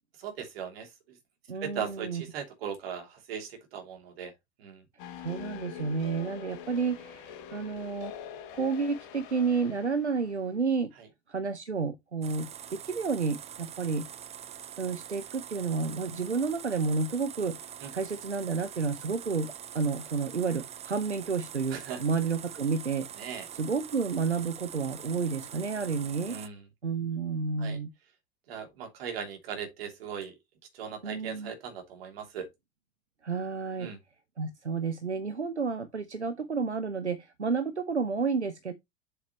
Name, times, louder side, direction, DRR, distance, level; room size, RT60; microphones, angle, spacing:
voice 1, 0.2-0.9 1.6-4.3 4.6-4.8 11.0-11.1 17.8-17.9 21.7-22.0 23.2-23.5 26.3-26.6 27.6-27.8 28.5-30.3 30.7-32.5 33.8-34.0, right 7 dB, 60° right, 3.2 m, -38 dB
voice 2, 1.5-2.2 5.2-8.1 8.5-10.9 11.3-14.1 14.8-17.6 17.9-23.1 23.5-26.4 26.8-27.9 31.0-31.5 33.2-33.9 34.4-38.7, right 4 dB, 90° right, 0.8 m, -31 dB
sound 1, 5.0-10.3, left 9 dB, 50° left, 1.6 m, -44 dB
sound 2, 12.2-26.5, right 9 dB, 20° right, 0.6 m, -44 dB
7.7 x 7.1 x 3.1 m
figure-of-eight pair, 80°, 33 cm